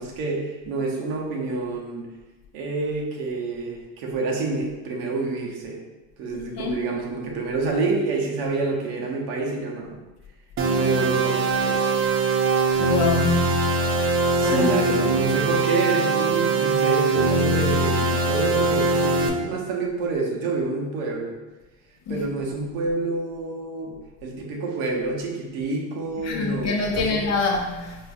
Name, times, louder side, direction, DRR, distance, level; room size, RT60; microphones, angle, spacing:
voice 1, 0.0-2.1 2.5-5.8 6.2-10.0 10.7-11.9 14.3-21.4 22.1-24.0 24.2-27.2, right 3 dB, 80° right, -1 dB, 0.9 m, -28 dB
voice 2, 6.3-6.8 12.8-13.6 14.4-14.8 22.1-22.3 26.2-28.0, left 3 dB, 40° left, 1 dB, 0.6 m, -26 dB
sound 1, 10.6-19.3, right 3 dB, 30° right, 0.4 m, -22 dB
3.9 x 2.5 x 2.4 m, 1.1 s
supercardioid pair, 95°, 42 cm